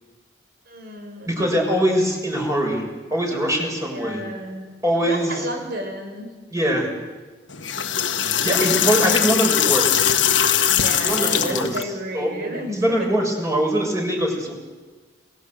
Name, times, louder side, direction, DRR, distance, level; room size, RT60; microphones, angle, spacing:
voice 1, 0.7-1.3 3.9-6.3 8.2-8.7 10.7-13.1, right 1 dB, 55° right, 4 dB, 5.4 m, -32 dB
voice 2, 1.3-2.8 3.1-4.2 4.8-5.3 6.5-6.9 8.4-10.2 11.0-11.7 12.1-12.5 12.8-14.5, equal, 15° right, 0 dB, 6.4 m, -22 dB
sound 1, 7.5-11.8, left 9 dB, 85° left, 1.5 m, -21 dB
28.0 x 19.0 x 8.0 m, 1.4 s
head